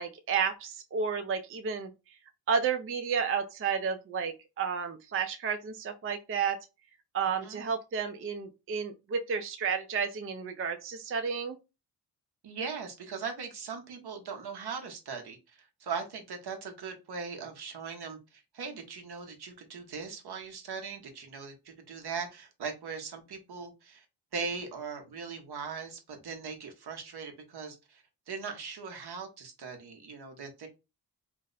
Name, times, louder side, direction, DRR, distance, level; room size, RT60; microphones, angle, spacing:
voice 1, 0.0-1.9 2.5-6.6 7.1-11.6, right 6 dB, 30° right, 0.4 m, -31 dB
voice 2, 12.4-24.0 24.3-30.7, right 5 dB, 65° right, 1.0 m, -40 dB
2.6 x 2.1 x 3.9 m
cardioid pair, 55°, 43 cm